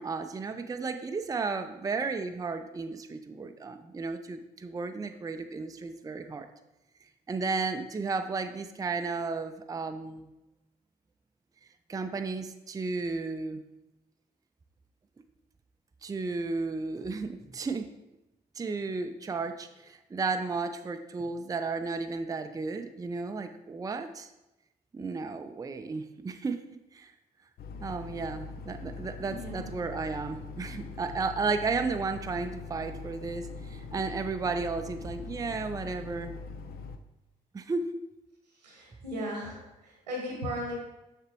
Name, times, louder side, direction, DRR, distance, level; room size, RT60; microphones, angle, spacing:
voice 1, 0.0-6.5 7.3-10.3 11.9-13.6 16.0-17.9 18.6-24.3 24.9-26.6 26.9-27.1 27.8-36.4 37.5-38.0, right 4 dB, 15° right, 7 dB, 0.5 m, -33 dB
sound 1, 27.6-37.0, left 4 dB, 50° left, 0.5 m, -42 dB
voice 2, 29.3-29.7 38.6-40.8, equal, 85° right, 0 dB, 1.3 m, -37 dB
6.6 x 6.5 x 3.0 m, 0.95 s
figure-of-eight pair, 40°, 21 cm